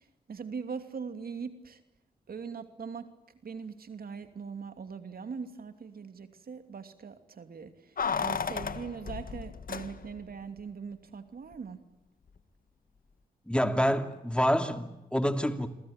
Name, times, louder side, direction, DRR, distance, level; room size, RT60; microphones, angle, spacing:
voice 1, 0.0-1.8 2.3-3.1 3.4-11.8, right 5 dB, 70° right, 9 dB, 2.8 m, -41 dB
Keys jangling, 8.0-10.3 10.6-10.7, left 6 dB, 60° left, 1.8 m, -34 dB
voice 2, 13.5-15.7, equal, 5° left, 8 dB, 2.8 m, -27 dB
28.5 x 23.0 x 9.0 m, 0.95 s
cardioid pair, 50°, 16 cm